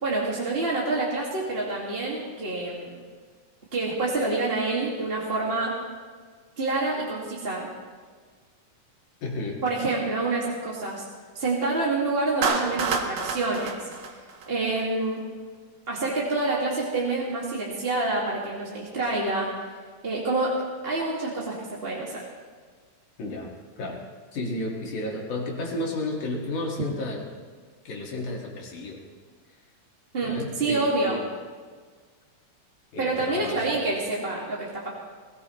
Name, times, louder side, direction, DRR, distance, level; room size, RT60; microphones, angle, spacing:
voice 1, 0.0-3.0 3.7-5.7 6.6-7.7 9.6-11.0 11.3-13.9 14.5-15.2 15.9-19.5 20.0-20.6 20.8-22.2 30.1-31.2 33.0-34.9, right 2 dB, 20° right, -5 dB, 2.0 m, -27 dB
voice 2, 9.2-9.6 23.2-24.0 24.3-27.2 27.9-29.0 30.2-31.2 32.9-33.7, left 2 dB, 70° left, -2 dB, 3.7 m, -32 dB
Clapping, 12.4-14.8, right 5 dB, 80° right, 1.0 m, -28 dB
20.5 x 17.5 x 3.2 m, 1.6 s
omnidirectional pair, 3.7 m